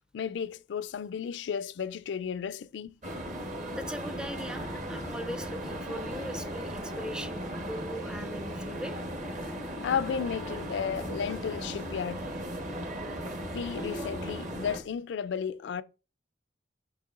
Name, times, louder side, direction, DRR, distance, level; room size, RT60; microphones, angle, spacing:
voice 1, 0.1-3.2 9.8-12.2 13.5-15.8, left 7 dB, 70° left, 0.3 m, -33 dB
sound 1, 3.0-14.8, equal, 45° right, 1.1 m, -37 dB
voice 2, 3.7-8.9, equal, 5° right, 0.4 m, -40 dB
6.5 x 6.1 x 2.5 m
head